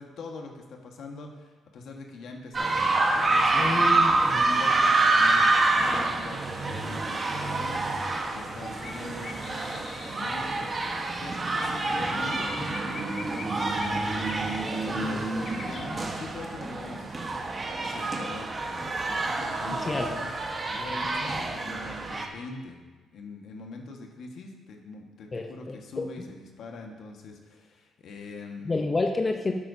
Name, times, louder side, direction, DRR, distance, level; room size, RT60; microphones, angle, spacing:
voice 1, 0.0-7.8 8.3-10.9 11.2-17.4 17.8-20.3 20.7-22.8 23.1-28.8, left 3 dB, 70° left, 2 dB, 1.5 m, -43 dB
sound 1, 2.5-22.3, right 2 dB, 35° right, 1.2 m, -27 dB
voice 2, 3.5-4.4 19.8-20.1 25.3-25.8 28.7-29.5, left 3 dB, 30° left, 3 dB, 0.7 m, -29 dB
sound 2, 8.3-16.1, left 4 dB, 55° left, 1.0 m, -45 dB
12.5 x 8.6 x 2.8 m, 1.3 s
cardioid pair, 90°, 0 cm